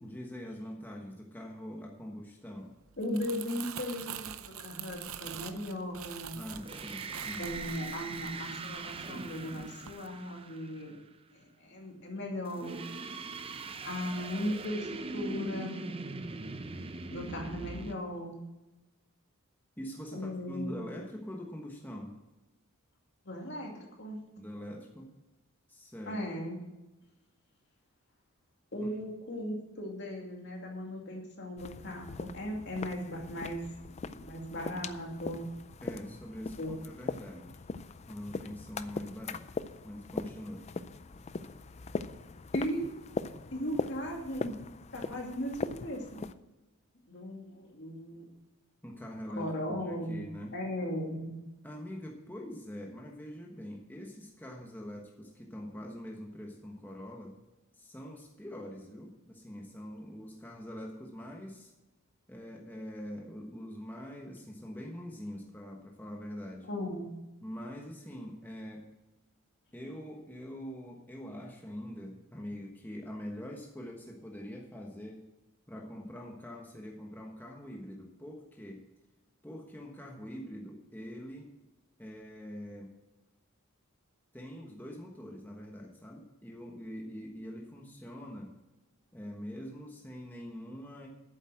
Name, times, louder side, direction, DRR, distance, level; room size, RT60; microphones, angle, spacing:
voice 1, 0.0-2.8 6.3-7.5 19.8-22.2 24.4-25.1 25.7-26.2 28.8-28.9 35.8-37.6 38.1-39.5 39.8-40.7 48.8-50.6 51.6-57.4 57.7-61.7 62.3-66.7 67.4-68.9 69.7-75.2 75.7-78.8 79.4-81.5 82.0-82.9 84.3-88.5 89.1-91.1, equal, 10° left, -1 dB, 1.3 m, -44 dB
Crumpling crinkling, 2.9-9.2 9.6-9.9, right 9 dB, 80° right, 0.6 m, -44 dB
voice 2, 3.0-6.4 7.4-11.0 11.3-12.8 13.8-15.8 17.1-18.4 20.1-20.8 23.2-24.2 26.1-26.6 28.7-33.6 34.1-35.4 36.6-36.7 42.5-43.0 43.5-44.5 44.9-46.3 47.1-48.3 49.4-50.2 50.5-51.3 66.7-67.1, equal, 55° left, 0 dB, 2.5 m, -37 dB
sound 1, 6.5-11.0 12.5-17.9, right 3 dB, 25° right, 0.6 m, -41 dB
sound 2, 31.6-46.3, left 4 dB, 30° left, 0.4 m, -40 dB
9.1 x 7.6 x 7.7 m, 1.0 s
head